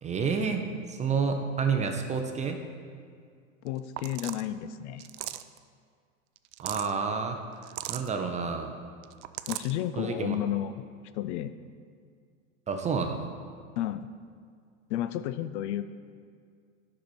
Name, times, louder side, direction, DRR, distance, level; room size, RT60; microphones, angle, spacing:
voice 1, 0.0-2.6 6.6-7.4 7.9-8.7 10.0-10.4 12.7-13.2, right 5 dB, 15° right, 5 dB, 0.6 m, -29 dB
voice 2, 3.6-5.1 9.5-10.7 11.1-11.5 13.8-14.1 14.9-15.8, left 12 dB, 55° left, 12 dB, 0.5 m, -32 dB
sound 1, 3.7-3.8 4.0-4.5 5.0-5.6 6.4-6.9 7.6-8.1 9.0-9.7, right 15 dB, 55° right, 0.5 m, -37 dB
10.0 x 6.3 x 4.2 m, 2.2 s
hypercardioid pair, 115°, 41 cm